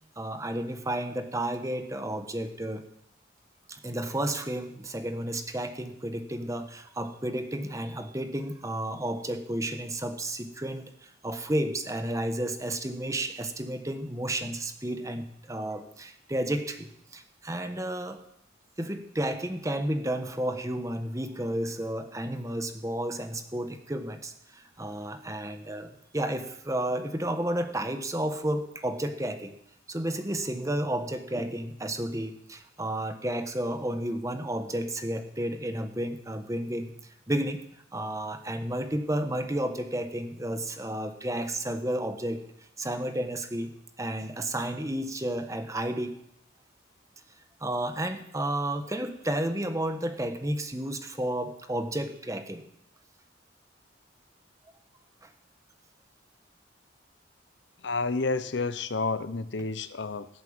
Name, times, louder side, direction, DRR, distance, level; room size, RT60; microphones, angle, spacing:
voice 1, 0.2-2.9 3.7-18.2 18.8-29.5 29.9-36.9 37.3-37.6 37.9-42.5 42.8-46.1 47.6-52.6 55.2-55.3, right 1 dB, 15° right, 8 dB, 1.2 m, -32 dB
voice 2, 57.8-60.3, left 3 dB, 65° left, 14 dB, 0.8 m, -30 dB
17.0 x 7.9 x 8.8 m, 0.75 s
head